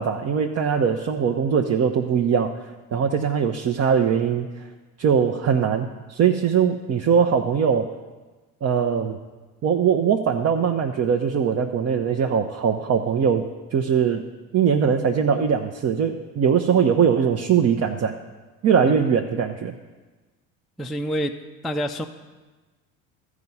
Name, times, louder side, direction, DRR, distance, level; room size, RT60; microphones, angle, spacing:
voice 1, 0.0-2.5 2.9-4.5 5.0-7.9 8.6-9.2 9.6-14.2 14.5-18.2 18.6-19.7, right 7 dB, 35° right, 3 dB, 0.6 m, -21 dB
voice 2, 20.8-21.3 21.6-22.1, equal, ahead, 4 dB, 0.3 m, -27 dB
14.0 x 4.8 x 5.4 m, 1.3 s
hypercardioid pair, 65°, 42 cm